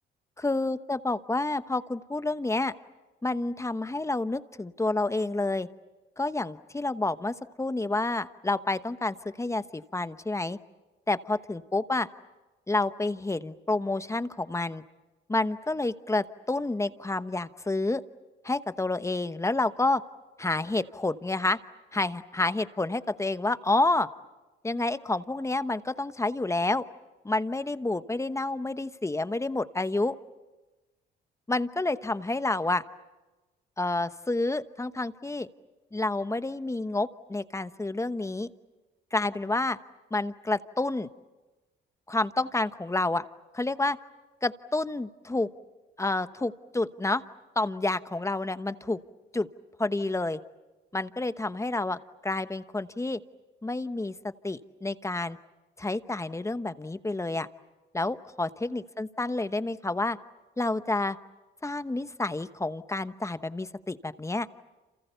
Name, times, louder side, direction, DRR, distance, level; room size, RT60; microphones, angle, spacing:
voice 1, 0.4-2.7 3.2-5.7 6.2-10.6 11.1-12.1 12.7-14.8 15.3-18.0 18.4-20.0 20.4-21.6 21.9-24.1 24.6-26.8 27.2-30.1 31.5-32.8 33.8-35.5 35.9-38.5 39.1-39.8 40.1-41.1 42.1-43.2 43.5-44.0 44.4-45.5 46.0-47.2 47.5-49.0 49.3-49.5 49.8-50.4 50.9-53.2 53.6-55.4 55.8-57.5 57.9-60.2 60.6-61.2 61.6-64.5, left 2 dB, 15° left, 12 dB, 1.0 m, -29 dB
29.5 x 28.0 x 6.9 m, 1.1 s
cardioid pair, 90°, 20 cm